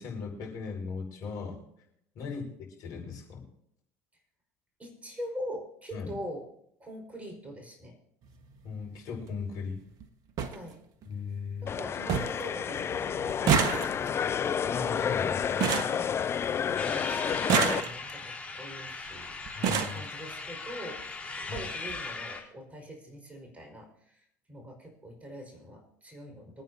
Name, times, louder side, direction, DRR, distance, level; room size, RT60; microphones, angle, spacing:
voice 1, 0.0-1.6 2.1-3.4 5.9-6.1 8.6-9.8 11.0-11.8 14.6-15.7 19.5-20.0 21.5-21.7, left 5 dB, 55° left, 0 dB, 5.4 m, -38 dB
voice 2, 4.8-6.5 6.8-7.9 10.5-10.8 11.6-13.8 15.9-16.2 16.5-19.3 19.8-26.6, equal, 20° right, 3 dB, 5.0 m, -43 dB
sound 1, 8.2-8.4 9.7-9.8 10.0-10.1 10.4-10.6 11.0-11.5 11.8-11.9 12.1-12.5 12.7-16.7 17.3-18.3 19.1-19.2 19.5-20.0 21.0-21.1 21.4-21.6 21.9-22.0, right 6 dB, 50° right, 1.5 m, -29 dB
sound 2, 11.7-17.8, left 8 dB, 35° left, 0.6 m, -30 dB
sound 3, 16.8-22.4, left 3 dB, 15° left, 3.9 m, -39 dB
25.0 x 9.4 x 2.8 m, 0.73 s
hypercardioid pair, 70°, 8 cm